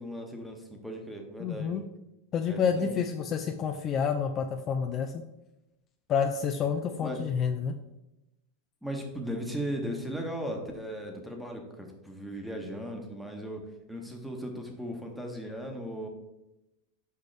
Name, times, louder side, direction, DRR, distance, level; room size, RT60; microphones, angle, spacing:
voice 1, 0.0-1.8 2.5-3.0 7.0-7.2 8.8-16.1, equal, ahead, 2 dB, 1.1 m, -37 dB
voice 2, 1.4-1.8 2.3-5.2 6.1-7.8, left 7 dB, 30° left, 5 dB, 0.4 m, -29 dB
6.4 x 5.1 x 3.3 m, 0.93 s
supercardioid pair, 140°, 0 cm